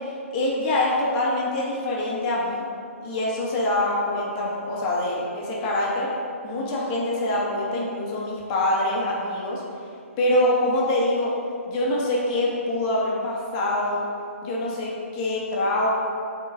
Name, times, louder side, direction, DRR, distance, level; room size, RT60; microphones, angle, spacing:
voice 1, 0.0-2.6 3.0-6.1 6.4-9.6 10.2-11.3 11.7-14.1 14.4-15.9, left 1 dB, 25° left, -4 dB, 1.7 m, -25 dB
7.9 x 4.4 x 5.1 m, 2.4 s
hypercardioid pair, 155°, 8 cm